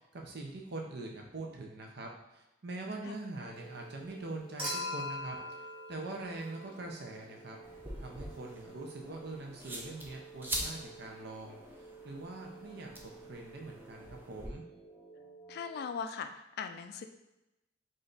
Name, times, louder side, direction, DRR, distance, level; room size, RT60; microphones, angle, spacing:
voice 1, 0.0-5.4 5.9-7.6 8.0-11.6 12.0-14.6, right 2 dB, 60° right, 1 dB, 0.7 m, -43 dB
sound 1, 3.5-15.9, right 4 dB, 10° left, 0.8 m, -53 dB
Human group actions / Chink clink / Liquid, 4.6-7.0 8.5-8.6, left 2 dB, 30° right, 1.0 m, -40 dB
sound 2, 7.6-14.5, right 1 dB, 10° right, 0.5 m, -44 dB
voice 2, 15.5-17.1, left 6 dB, 55° left, 7 dB, 0.3 m, -39 dB
3.2 x 2.6 x 3.9 m, 0.95 s
head